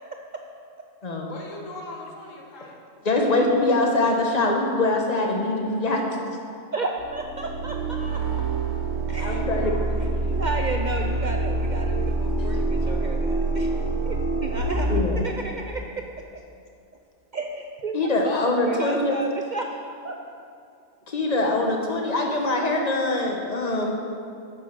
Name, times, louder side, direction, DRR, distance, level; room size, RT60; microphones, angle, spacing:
voice 1, 1.3-2.8 9.1-10.5 18.2-18.6, left 2 dB, 85° left, 0 dB, 1.7 m, -38 dB
voice 2, 3.0-6.0 9.2-9.7 14.9-15.2 17.9-19.2 21.1-24.0, left 2 dB, 35° left, 1 dB, 1.2 m, -23 dB
voice 3, 6.7-8.2 9.1-9.4 10.4-13.7 14.0-16.0 17.3-17.9 18.2-18.3 18.6-20.2, right 3 dB, 50° right, 2 dB, 0.5 m, -32 dB
sound 1, 7.0-15.0, right 2 dB, 85° right, 1.6 m, -26 dB
9.3 x 6.6 x 6.0 m, 2.4 s
omnidirectional pair, 1.3 m